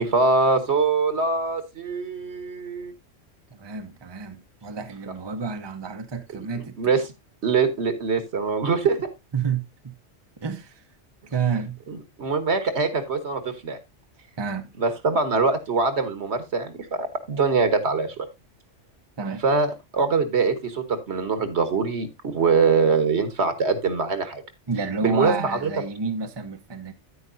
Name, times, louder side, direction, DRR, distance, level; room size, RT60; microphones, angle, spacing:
voice 1, 0.0-2.9 6.8-7.0 7.4-9.1 11.9-13.8 14.8-18.3 19.4-24.4 25.0-25.7, right 4 dB, 65° right, 1.6 m, -23 dB
voice 2, 3.5-6.8 9.3-9.9 10.4-10.8 11.3-11.8 14.4-14.7 19.2-19.4 24.7-26.9, right 5 dB, 25° right, 0.8 m, -29 dB
9.6 x 9.5 x 2.6 m
omnidirectional pair, 1.2 m